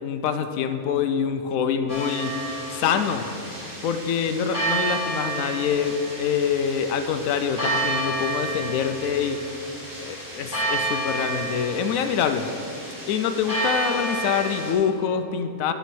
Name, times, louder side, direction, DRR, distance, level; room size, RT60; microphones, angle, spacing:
voice 1, 0.0-2.4 2.7-3.3 3.8-9.4 10.0-12.5 13.1-15.7, left 7 dB, 75° left, 8 dB, 1.0 m, -25 dB
sound 1, 1.9-14.7, right 2 dB, 15° right, 2.4 m, -30 dB
8.9 x 6.9 x 6.2 m, 2.6 s
omnidirectional pair, 1.5 m